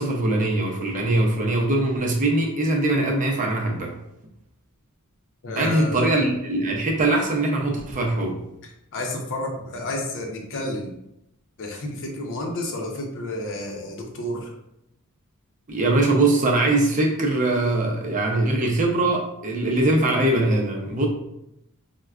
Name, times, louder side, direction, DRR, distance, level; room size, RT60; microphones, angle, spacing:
voice 1, 0.0-3.9 5.6-8.3 15.7-21.1, right 2 dB, 35° right, 0 dB, 0.6 m, -22 dB
voice 2, 5.4-6.3 8.6-10.9 11.6-14.5, left 1 dB, 60° left, 1 dB, 0.7 m, -31 dB
4.5 x 2.1 x 2.4 m, 0.82 s
head